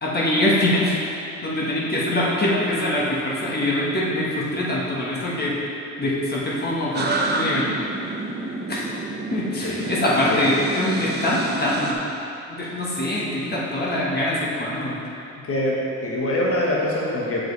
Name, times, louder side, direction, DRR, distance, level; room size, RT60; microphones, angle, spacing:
voice 1, 0.0-1.0 1.4-5.5 6.0-7.7 8.7-8.9 9.3-12.0 12.5-15.0, left 1 dB, 30° left, -6 dB, 1.4 m, -23 dB
sound 1, 6.9-11.9, right 2 dB, 35° right, 0.8 m, -29 dB
voice 2, 15.4-17.5, left 1 dB, 50° left, -4 dB, 1.4 m, -24 dB
7.4 x 5.2 x 3.3 m, 2.8 s
cardioid pair, 90°, 30 cm